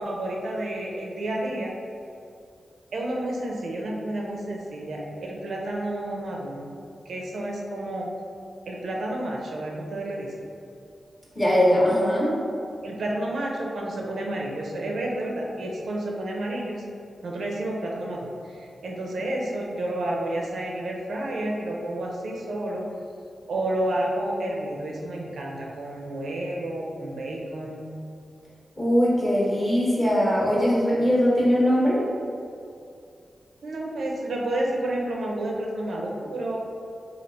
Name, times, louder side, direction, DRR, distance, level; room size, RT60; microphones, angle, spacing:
voice 1, 0.0-1.7 2.9-6.7 7.1-8.1 8.7-10.3 12.8-16.8 17.2-22.9 23.5-27.9 33.6-36.6, right 1 dB, 75° right, -1 dB, 0.5 m, -30 dB
voice 2, 11.3-12.3 28.8-32.0, equal, 15° left, -6 dB, 0.9 m, -21 dB
3.2 x 2.5 x 3.9 m, 2.5 s
wide cardioid pair, 110°, 0 cm